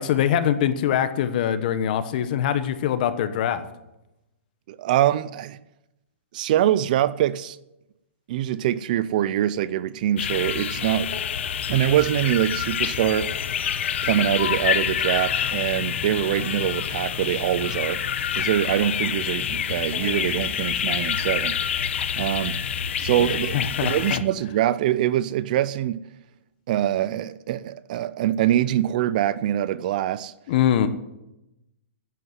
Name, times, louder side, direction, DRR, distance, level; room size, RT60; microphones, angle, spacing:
voice 1, 0.0-3.6 23.2-24.2 30.5-30.9, left 10 dB, 40° left, 1.1 m, -23 dB
voice 2, 4.7-5.6 6.3-7.6 8.3-11.1 11.7-13.4 14.0-18.0 18.4-21.6 22.2-22.6 23.0-26.0 26.7-30.3, right 12 dB, 40° right, 0.4 m, -24 dB
sound 1, 10.2-24.2, left 8 dB, 65° left, 0.9 m, -27 dB
11.0 x 8.4 x 9.3 m
hypercardioid pair, 165°, 7 cm